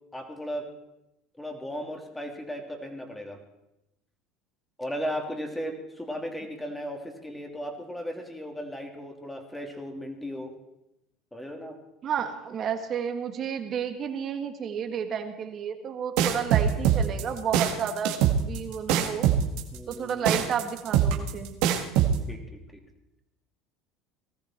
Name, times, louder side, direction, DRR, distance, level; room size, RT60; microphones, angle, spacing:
voice 1, 0.1-0.7 1.4-3.4 4.8-10.5 11.3-11.8 19.7-20.3 22.3-22.8, equal, 10° left, 3 dB, 3.0 m, -36 dB
voice 2, 12.0-19.3 19.9-21.5, right 7 dB, 45° right, 6 dB, 2.0 m, -31 dB
sound 1, 16.2-22.2, right 9 dB, 75° right, 1.9 m, -23 dB
19.0 x 14.0 x 4.5 m, 0.88 s
supercardioid pair, 95°, 0 cm